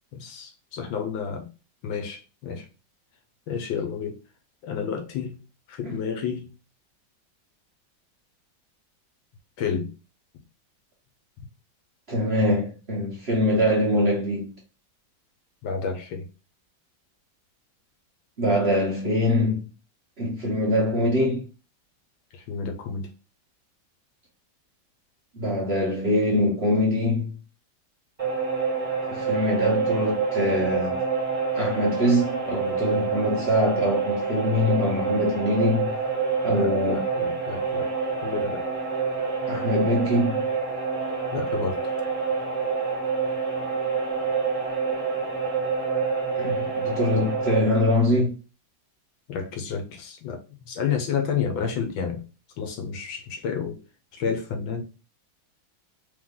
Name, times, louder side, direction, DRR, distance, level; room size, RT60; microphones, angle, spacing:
voice 1, 0.1-1.5 1.8-2.7 3.5-4.2 4.6-5.4 5.7-6.5 9.6-9.9 15.6-16.3 22.3-23.1 36.5-37.9 38.2-38.7 39.4-39.7 41.3-41.8 49.3-52.2 52.6-53.8 54.1-54.8, left 6 dB, 80° left, 1.6 m, -30 dB
voice 2, 12.1-14.5 18.4-19.6 20.2-21.5 25.3-27.3 29.1-31.0 31.5-35.9 36.4-37.0 39.5-40.5 46.3-48.4, left 1 dB, 45° right, 0.9 m, -23 dB
sound 1, 28.2-47.6, right 5 dB, 15° right, 1.8 m, -27 dB
3.5 x 3.4 x 3.7 m
omnidirectional pair, 2.2 m